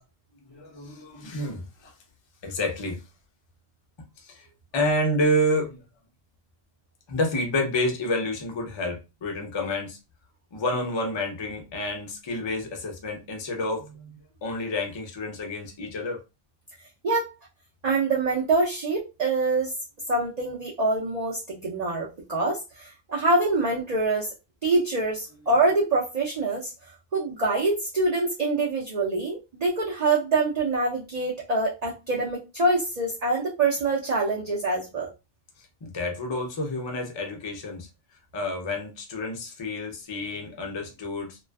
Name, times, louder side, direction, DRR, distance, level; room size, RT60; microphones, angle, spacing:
voice 1, 0.5-1.9 2.4-3.0 4.2-4.5 4.7-5.8 7.1-10.0 10.5-16.2 35.8-37.9 38.3-41.4, left 1 dB, 35° left, 0.4 m, -29 dB
voice 2, 17.8-19.7 20.1-24.3 24.6-26.7 27.1-35.1, right 2 dB, 45° right, 0.5 m, -25 dB
2.4 x 2.3 x 2.2 m
omnidirectional pair, 1.1 m